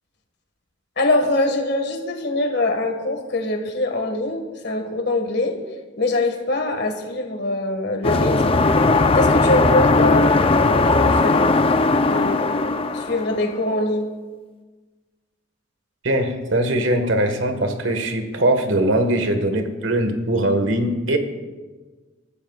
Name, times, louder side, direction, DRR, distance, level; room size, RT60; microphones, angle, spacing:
voice 1, 1.0-5.6 6.0-8.6 9.1-11.7 12.0-14.1, left 2 dB, 60° left, 4 dB, 1.8 m, -23 dB
sound 1, 8.0-13.6, left 3 dB, 30° left, 0.5 m, -18 dB
voice 2, 16.0-21.2, right 1 dB, 80° right, 6 dB, 1.6 m, -21 dB
27.0 x 14.5 x 2.4 m, 1.3 s
head